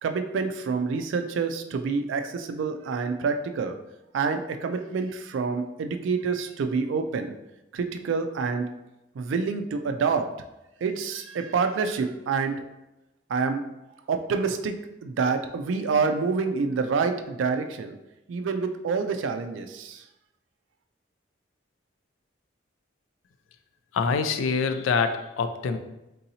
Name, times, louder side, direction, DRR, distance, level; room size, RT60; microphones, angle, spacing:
voice 1, 0.0-3.8 4.1-7.3 7.7-8.7 9.2-10.3 10.8-12.6 13.3-13.6 14.1-14.8 15.0-18.0 18.3-20.0, right 5 dB, 75° right, 7 dB, 0.3 m, -27 dB
voice 2, 23.9-25.8, left 5 dB, 85° left, 8 dB, 0.3 m, -25 dB
3.8 x 2.7 x 2.7 m, 0.94 s
head